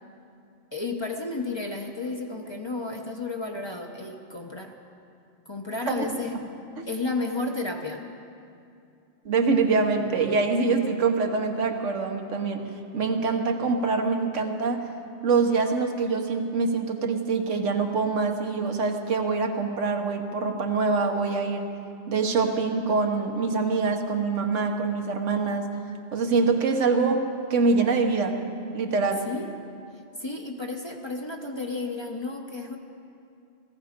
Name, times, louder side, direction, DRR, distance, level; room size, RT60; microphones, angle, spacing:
voice 1, 0.7-4.8 5.5-6.4 6.9-8.0 29.2-29.5 30.2-32.8, left 3 dB, 25° left, 2 dB, 0.8 m, -32 dB
voice 2, 9.2-14.9 15.2-21.7 22.1-25.7 26.1-28.4 28.7-29.3, right 4 dB, 80° right, 4 dB, 1.4 m, -25 dB
17.5 x 15.0 x 5.1 m, 2.5 s
omnidirectional pair, 1.2 m